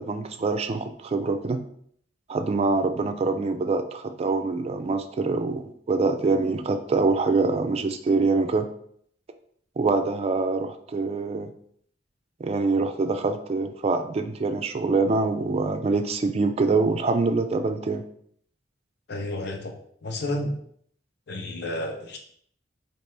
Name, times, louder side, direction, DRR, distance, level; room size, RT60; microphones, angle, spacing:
voice 1, 0.0-1.6 2.3-8.7 9.8-11.5 12.4-18.0, right 3 dB, 35° right, 8 dB, 0.3 m, -25 dB
voice 2, 19.1-19.7 20.0-20.5 21.3-22.2, left 1 dB, 65° left, 3 dB, 0.7 m, -31 dB
4.4 x 2.9 x 3.2 m, 0.65 s
head